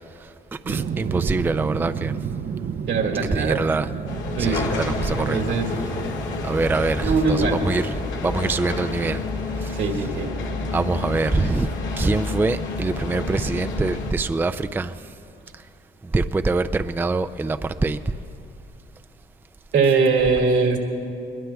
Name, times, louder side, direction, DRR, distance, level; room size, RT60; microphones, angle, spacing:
voice 1, 0.1-2.2 3.3-3.9 4.4-5.4 6.4-9.2 9.5-9.8 10.7-11.7 12.0-15.1 15.5-15.7 16.0-18.2, right 3 dB, 10° right, 0.3 m, -24 dB
sound 1, 0.6-9.0 9.4-10.6 11.0-11.2, right 7 dB, 50° right, 0.6 m, -33 dB
voice 2, 2.9-3.6 4.3-4.8 5.2-5.7 7.0-7.6 9.7-10.3 19.7-20.8, right 4 dB, 75° right, 2.0 m, -21 dB
sound 2, 4.1-14.1, left 3 dB, 75° left, 1.8 m, -29 dB
21.5 x 21.0 x 2.3 m
cardioid pair, 90°, 20 cm